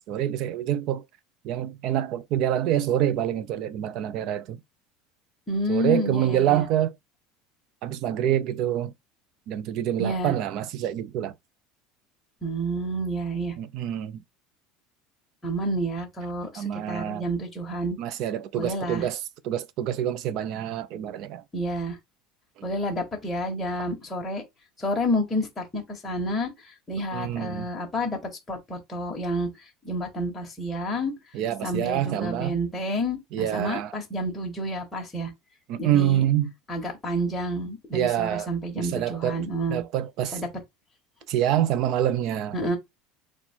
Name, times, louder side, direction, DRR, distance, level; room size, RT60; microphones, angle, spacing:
voice 1, 0.1-1.0 1.4-4.6 5.7-6.9 7.8-8.9 9.5-11.3 13.6-14.2 16.6-17.2 18.0-19.2 19.4-21.4 27.1-27.7 31.3-32.5 33.3-33.9 35.7-36.5 37.9-38.5 38.8-39.4 39.7-40.4 41.3-42.8, right 11 dB, 50° right, 0.5 m, -26 dB
voice 2, 5.5-6.6 10.0-10.3 12.4-13.6 15.4-18.0 18.5-19.1 21.5-22.0 22.6-24.4 24.8-26.5 26.9-29.5 29.8-31.1 31.6-35.3 35.8-36.2 36.7-39.8 40.3-40.5 42.5-42.8, equal, 10° left, 1.4 m, -29 dB
4.2 x 2.3 x 4.5 m
cardioid pair, 155°, 0 cm